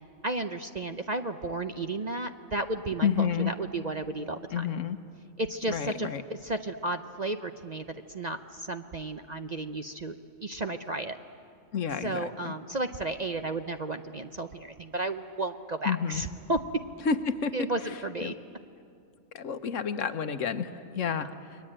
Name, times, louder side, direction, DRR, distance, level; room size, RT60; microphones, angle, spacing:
voice 1, 0.2-4.6 5.4-11.2 12.0-16.8 17.5-18.3 21.0-21.3, right 2 dB, 40° right, 7 dB, 0.7 m, -33 dB
voice 2, 3.0-3.5 4.5-5.0 5.7-6.2 11.7-12.5 15.8-16.2 17.0-18.3 19.3-21.6, left 6 dB, 65° left, 10 dB, 1.3 m, -30 dB
29.5 x 22.5 x 8.8 m, 2.4 s
omnidirectional pair, 1.5 m